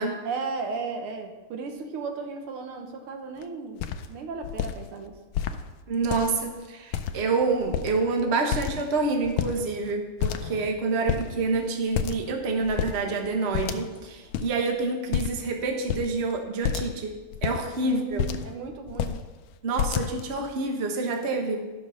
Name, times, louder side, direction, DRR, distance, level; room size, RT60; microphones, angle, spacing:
voice 1, 0.2-3.8 4.1-5.2 17.8-19.2, right 4 dB, 85° right, 5 dB, 2.0 m, -35 dB
sound 1, 3.4-3.5 3.8-4.1 4.4-4.7 5.3-5.6 6.0-6.5 6.9-7.4 7.6-8.1 8.5-9.0 9.2-9.9 10.2-10.7 11.1-11.3 11.9-12.3 12.6-13.0 13.5-14.0 14.3-14.5 15.1-15.5 15.9-16.1 16.6-16.9 17.3-18.5 18.9-19.2 19.8-20.4, left 9 dB, 75° left, 1.4 m, -29 dB
voice 2, 5.9-17.1 17.4-18.2 19.6-21.6, right 3 dB, 35° right, 3 dB, 1.2 m, -27 dB
13.0 x 5.3 x 6.3 m, 1.2 s
omnidirectional pair, 2.4 m